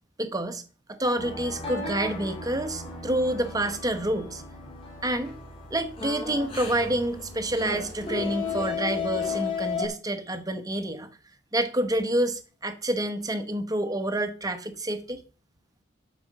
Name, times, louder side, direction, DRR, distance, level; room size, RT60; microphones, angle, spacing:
voice 1, 0.2-0.6 0.9-4.4 5.0-5.3 5.7-11.1 11.5-15.2, right 1 dB, 20° right, 1.1 m, -28 dB
sound 1, 1.2-9.9, left 5 dB, 30° left, 3.7 m, -34 dB
12.0 x 5.2 x 6.6 m
head